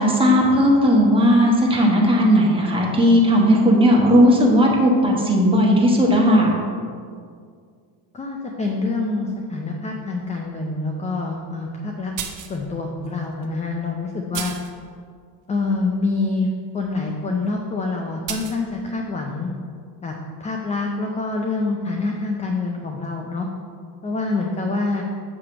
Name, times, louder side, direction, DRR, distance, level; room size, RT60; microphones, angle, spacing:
voice 1, 0.0-6.5, equal, 10° right, -2 dB, 1.2 m, -16 dB
voice 2, 8.1-12.1 12.5-14.5 15.5-16.5 16.7-19.5 20.0-20.1 20.4-23.5 24.0-25.0, left 3 dB, 15° left, 1 dB, 0.4 m, -26 dB
sound 1, 12.2-12.6 13.4-13.5 14.3-14.8 18.3-18.6, right 8 dB, 40° right, 0.7 m, -31 dB
7.8 x 3.2 x 5.9 m, 2.1 s
cardioid pair, 120°, 49 cm